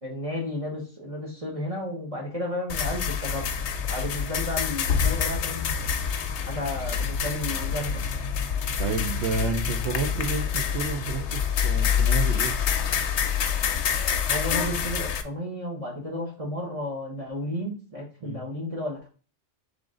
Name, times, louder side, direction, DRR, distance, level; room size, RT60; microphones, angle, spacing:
voice 1, 0.0-3.5 3.9-5.9 6.5-8.2 14.3-19.1, left 1 dB, 30° right, -2 dB, 1.1 m, -33 dB
sound 1, 2.7-15.2, left 7 dB, 70° left, 0.8 m, -27 dB
voice 2, 8.8-12.5 18.2-18.4, right 4 dB, 65° right, 0 dB, 0.8 m, -30 dB
3.7 x 3.3 x 3.6 m, 0.38 s
omnidirectional pair, 1.3 m